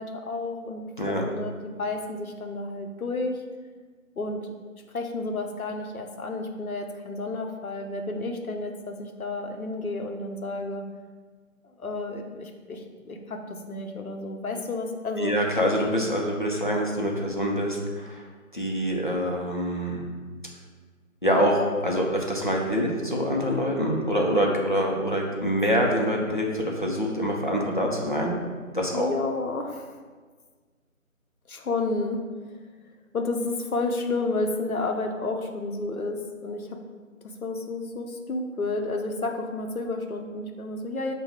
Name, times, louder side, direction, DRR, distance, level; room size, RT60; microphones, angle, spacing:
voice 1, 0.0-3.4 4.2-4.7 4.9-10.9 11.6-15.4 28.9-30.0 31.5-32.2 33.1-36.8 37.2-41.1, left 2 dB, 85° left, 3 dB, 0.8 m, -31 dB
voice 2, 15.2-18.3 18.5-20.0 21.2-28.4 28.7-29.1, equal, 40° left, -2 dB, 0.5 m, -25 dB
6.6 x 2.2 x 3.6 m, 1.5 s
figure-of-eight pair, 165°, 42 cm